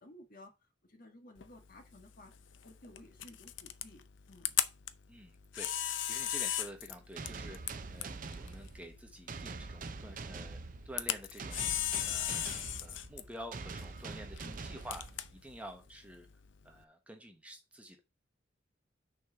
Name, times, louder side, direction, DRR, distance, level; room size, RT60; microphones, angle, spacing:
voice 1, 0.0-2.3 2.6-4.6 14.4-14.7, left 1 dB, 50° left, 1.6 m, -56 dB
Camera, 1.4-16.8, left 11 dB, 80° left, 0.6 m, -39 dB
voice 2, 5.1-10.6 10.8-12.5 12.8-16.3 16.6-18.0, right 1 dB, 5° right, 1.1 m, -49 dB
sound 1, 7.2-15.6, right 3 dB, 45° right, 0.6 m, -45 dB
6.4 x 4.4 x 5.6 m
head